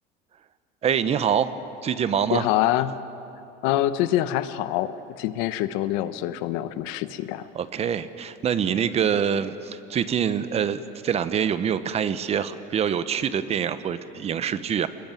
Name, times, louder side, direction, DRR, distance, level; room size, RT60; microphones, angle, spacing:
voice 1, 0.8-1.5 1.8-2.5 7.5-14.9, right 8 dB, 35° right, 13 dB, 1.0 m, -25 dB
voice 2, 2.3-3.0 3.6-7.5, left 13 dB, 80° left, 12 dB, 1.1 m, -25 dB
25.0 x 21.0 x 9.2 m, 2.8 s
cardioid pair, 130°, 18 cm